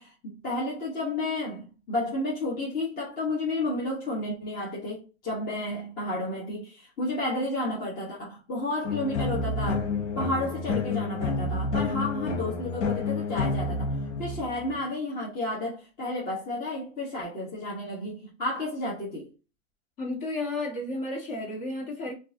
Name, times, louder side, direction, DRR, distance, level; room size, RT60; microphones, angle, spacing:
voice 1, 0.0-19.3, left 2 dB, 25° left, 1.1 m, -32 dB
sound 1, 8.8-14.8, left 3 dB, 65° left, 1.1 m, -29 dB
voice 2, 20.0-22.1, left 2 dB, 40° left, 1.8 m, -32 dB
4.5 x 2.6 x 2.7 m
hypercardioid pair, 145°, 38 cm